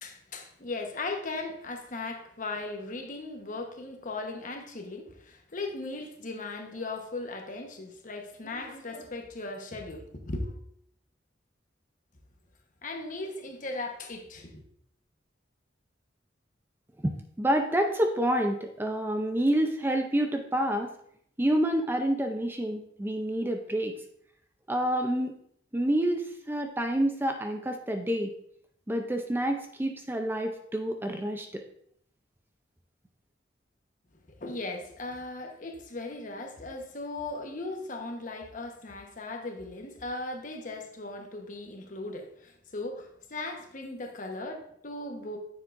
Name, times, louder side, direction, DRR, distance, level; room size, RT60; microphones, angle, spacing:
voice 1, 0.0-10.5 12.8-14.6 34.4-45.4, left 2 dB, 45° left, 3 dB, 1.1 m, -38 dB
voice 2, 17.0-20.9 21.4-23.9 24.7-25.4 25.7-28.3 28.9-31.6, right 1 dB, 10° right, 5 dB, 0.5 m, -28 dB
9.7 x 7.2 x 2.6 m, 0.69 s
head